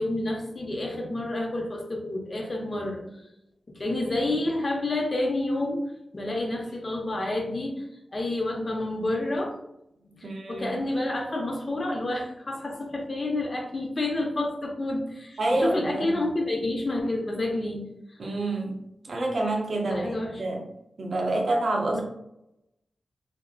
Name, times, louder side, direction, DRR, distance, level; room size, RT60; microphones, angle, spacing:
voice 1, 0.0-3.0 3.7-5.8 6.1-7.8 8.1-9.6 10.0-17.9 19.8-20.4 21.9-22.0, left 2 dB, 40° left, 0 dB, 0.6 m, -29 dB
voice 2, 10.2-10.8 15.4-16.3 18.2-20.6 21.0-22.0, right 2 dB, 60° right, 0 dB, 0.6 m, -28 dB
2.7 x 2.4 x 2.4 m, 0.84 s
wide cardioid pair, 120°, 0 cm